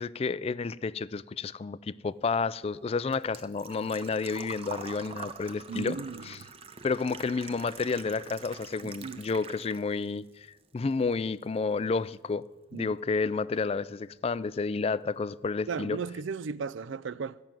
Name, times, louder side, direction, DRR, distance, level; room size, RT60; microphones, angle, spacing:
voice 1, 0.0-6.0 6.2-6.4 6.8-10.5 10.7-12.5 12.7-16.0, left 4 dB, 30° left, 0.3 m, -30 dB
Engine / Trickle dribble / Fill (with liquid), 2.2-10.1 10.4-11.4 11.7-11.8 13.7-13.8 14.0-14.3 14.7-14.8 15.0-15.1, right 4 dB, 30° right, 0.8 m, -45 dB
voice 2, 5.7-6.3 8.8-9.2 12.7-12.9 15.7-17.4, right 5 dB, 85° right, 0.4 m, -35 dB
13.5 x 6.0 x 9.0 m
head